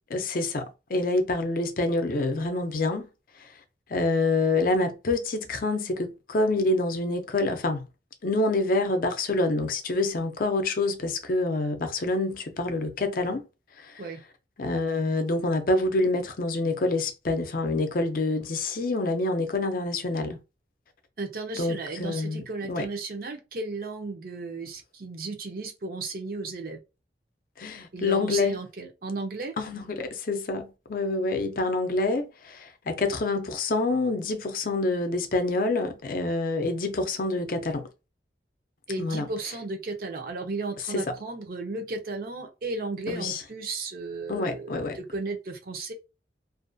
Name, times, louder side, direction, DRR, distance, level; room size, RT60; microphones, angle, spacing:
voice 1, 0.1-3.1 3.4-3.5 3.9-7.8 8.2-13.4 13.8-14.0 14.6-20.4 21.6-22.9 27.6-28.6 29.6-37.9 39.0-39.3 40.9-41.0 43.1-43.4 44.3-45.0, left 2 dB, 50° left, 0.5 m, -27 dB
voice 2, 21.2-26.8 27.9-29.5 38.9-45.9, right 3 dB, 55° right, 0.6 m, -34 dB
2.5 x 2.3 x 2.6 m
head